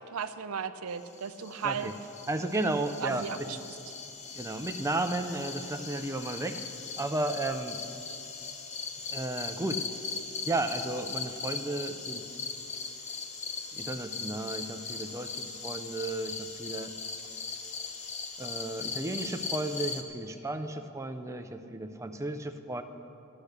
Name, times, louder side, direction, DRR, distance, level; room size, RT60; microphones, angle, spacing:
voice 1, 0.1-1.9 3.0-3.6, right 6 dB, 75° right, 11 dB, 0.6 m, -35 dB
sound 1, 1.1-20.0, left 5 dB, 35° left, 0.9 m, -39 dB
voice 2, 2.3-3.6 4.3-6.6 7.0-7.8 9.1-9.9 10.5-12.5 13.7-16.9 18.4-22.8, right 2 dB, 15° right, 6 dB, 0.5 m, -33 dB
13.5 x 10.0 x 6.6 m, 2.9 s
head